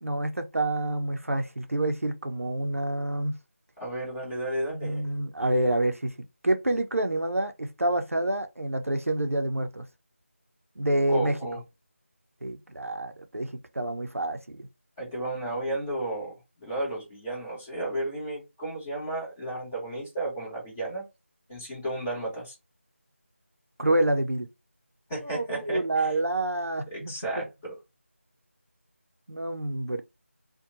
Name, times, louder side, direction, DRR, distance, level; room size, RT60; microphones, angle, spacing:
voice 1, 0.0-3.3 4.7-6.1 6.4-9.9 10.8-11.4 12.4-14.7 23.8-24.5 25.2-27.4 29.3-30.0, right 1 dB, 80° right, 0.5 m, -28 dB
voice 2, 3.8-5.0 11.1-11.6 15.0-21.0 21.5-22.5 25.1-26.1 26.9-27.7, right 1 dB, 15° left, 1.3 m, -33 dB
2.7 x 2.2 x 2.5 m
figure-of-eight pair, 165°, 7 cm